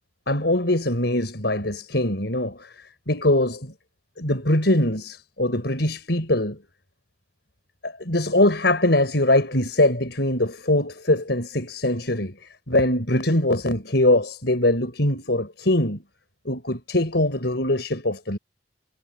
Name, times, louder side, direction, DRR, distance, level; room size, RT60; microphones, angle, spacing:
voice 1, 0.3-2.7 3.1-3.7 4.2-6.6 7.8-12.3 12.7-16.0 16.4-18.4, left 1 dB, 65° left, 5.1 m, -22 dB
head